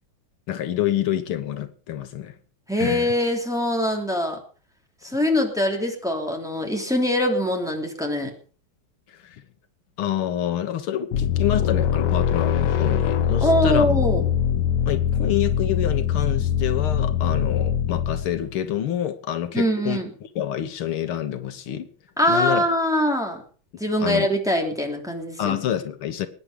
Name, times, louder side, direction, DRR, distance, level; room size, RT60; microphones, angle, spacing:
voice 1, 0.5-2.4 2.8-3.1 9.1-9.4 10.0-14.0 14.9-20.0 20.4-21.9 22.3-22.6 24.0-24.3 25.4-26.3, left 11 dB, 85° left, 2.0 m, -27 dB
voice 2, 2.7-4.4 5.0-8.3 13.4-14.2 19.5-20.1 22.2-23.4 23.8-25.6, left 1 dB, ahead, 3.2 m, -23 dB
sound 1, 11.1-18.6, left 8 dB, 65° left, 1.4 m, -22 dB
22.0 x 9.8 x 5.1 m
omnidirectional pair, 2.3 m